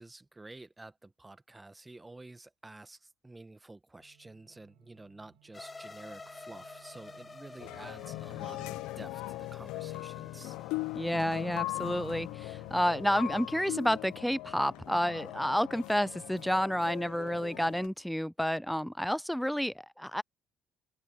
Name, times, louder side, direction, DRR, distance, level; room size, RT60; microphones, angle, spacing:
voice 1, 0.0-10.6, right 2 dB, 15° right, 1.3 m, -50 dB
sound 1, 4.0-17.8, right 28 dB, 85° right, 7.8 m, -63 dB
sound 2, 5.5-13.5, left 3 dB, 25° left, 1.0 m, -52 dB
sound 3, 7.6-17.9, left 19 dB, 80° left, 0.6 m, -40 dB
voice 2, 10.9-20.2, equal, ahead, 0.4 m, -30 dB
open air
supercardioid pair, 70°, 0 cm